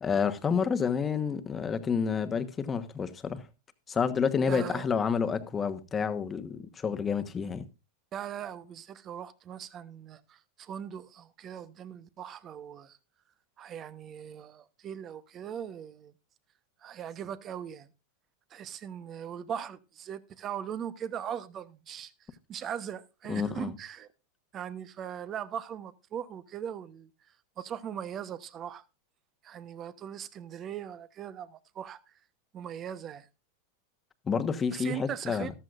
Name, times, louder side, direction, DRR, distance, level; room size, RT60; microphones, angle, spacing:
voice 1, 0.0-3.4 3.9-7.6 23.3-23.7 34.3-35.5, left 6 dB, 20° left, 1.2 m, -29 dB
voice 2, 4.5-4.9 8.1-13.0 13.6-16.1 16.8-17.9 18.5-24.1 24.5-28.8 29.4-32.1 32.5-33.3 34.7-35.5, right 9 dB, 35° right, 1.0 m, -40 dB
14.0 x 12.5 x 2.5 m
hypercardioid pair, 105°, 0 cm